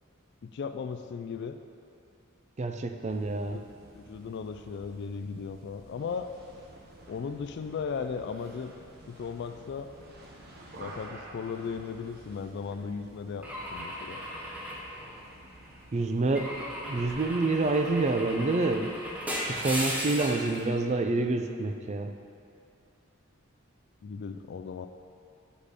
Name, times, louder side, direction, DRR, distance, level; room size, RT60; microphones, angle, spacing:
voice 1, 0.4-1.6 3.5-3.6 3.9-6.3 7.1-8.7 9.1-9.9 10.8-14.2 24.0-24.9, left 5 dB, 55° left, 8 dB, 0.3 m, -36 dB
voice 2, 2.6-3.6 15.9-16.5 16.9-18.9 19.3-22.1, right 2 dB, 30° right, 6 dB, 0.4 m, -27 dB
sound 1, 3.0-20.7, right 1 dB, 50° right, 1.0 m, -52 dB
Car / Engine / Glass, 13.4-15.6 16.3-20.5, equal, 5° right, 1.0 m, -36 dB
8.8 x 5.0 x 5.1 m, 2.6 s
head